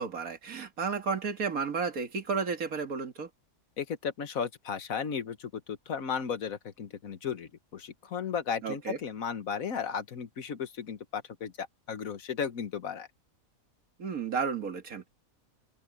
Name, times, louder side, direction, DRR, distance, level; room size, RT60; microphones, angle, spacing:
voice 1, 0.0-3.3 8.6-9.0 14.0-15.1, right 5 dB, 85° right, 2.3 m, -32 dB
voice 2, 3.8-13.1, left 7 dB, 75° left, 1.7 m, -35 dB
omnidirectional pair, 1.5 m